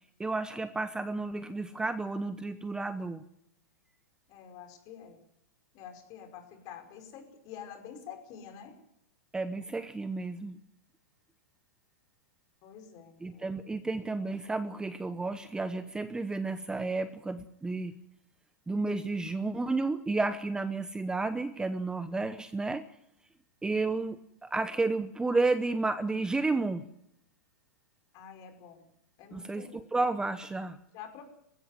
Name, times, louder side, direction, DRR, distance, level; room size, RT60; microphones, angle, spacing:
voice 1, 0.2-3.2 9.3-10.6 13.2-18.0 18.7-22.8 23.6-26.8 29.3-30.8, right 3 dB, 10° right, 11 dB, 0.9 m, -32 dB
voice 2, 4.3-5.2 5.7-8.8 12.6-13.5 28.1-28.9 29.2-29.8 30.9-31.2, left 8 dB, 40° left, 6 dB, 5.4 m, -47 dB
20.5 x 15.5 x 9.5 m, 0.76 s
hypercardioid pair, 125°, 9 cm